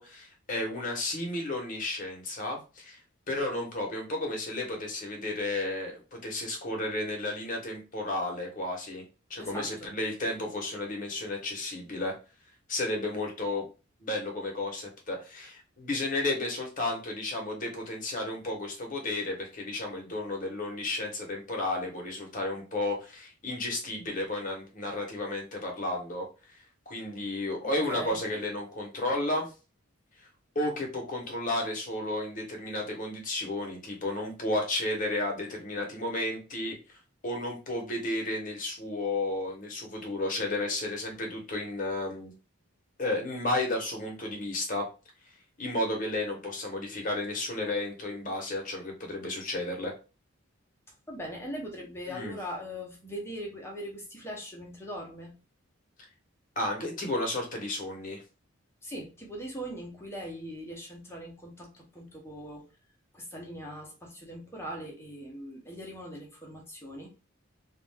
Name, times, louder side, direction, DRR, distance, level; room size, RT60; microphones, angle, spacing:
voice 1, 0.0-3.0 3.3-9.0 9.3-12.1 12.7-13.6 14.0-26.3 26.9-29.5 30.2-30.3 30.5-36.8 37.2-42.3 43.0-44.9 45.6-49.9 52.1-52.4 56.6-58.2, left 2 dB, 40° left, 1 dB, 0.9 m, -32 dB
voice 2, 9.4-9.9 27.6-28.2 51.1-55.4 58.8-62.6 63.1-67.1, equal, 10° left, -1 dB, 0.7 m, -40 dB
2.4 x 2.2 x 3.3 m, 0.31 s
head